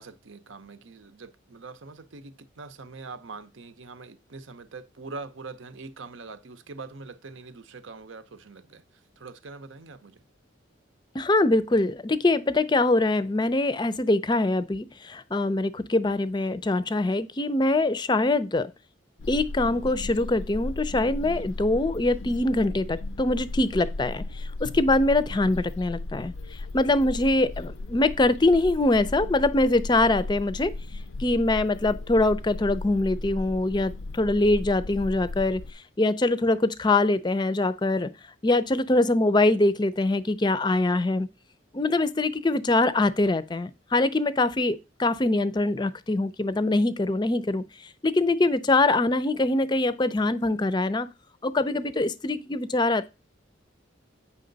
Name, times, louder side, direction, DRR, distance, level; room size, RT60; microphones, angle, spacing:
voice 1, 0.0-8.8 9.2-10.2, right 3 dB, 80° right, 0.8 m, -43 dB
voice 2, 11.1-18.7 19.3-30.7 31.2-38.1 38.4-41.3 41.7-51.1 51.4-53.1, left 2 dB, 20° left, 0.4 m, -23 dB
sound 1, 19.2-35.7, left 2 dB, 80° left, 0.5 m, -36 dB
8.6 x 5.6 x 3.9 m
head